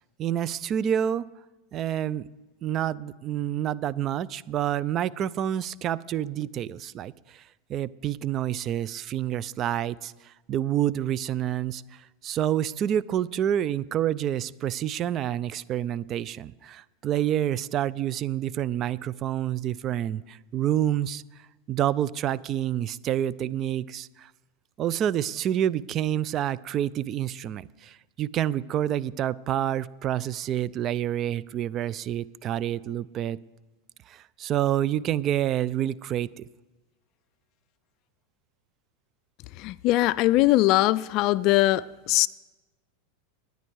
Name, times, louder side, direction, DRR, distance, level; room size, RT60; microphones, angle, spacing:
voice 1, 0.2-1.3 1.7-2.3 2.6-7.4 7.7-21.2 21.7-24.3 24.8-33.4 34.1-36.4, right 11 dB, 40° right, 0.4 m, -28 dB
voice 2, 39.6-42.3, left 17 dB, 50° left, 0.4 m, -21 dB
19.5 x 9.4 x 4.7 m
hypercardioid pair, 110°, 0 cm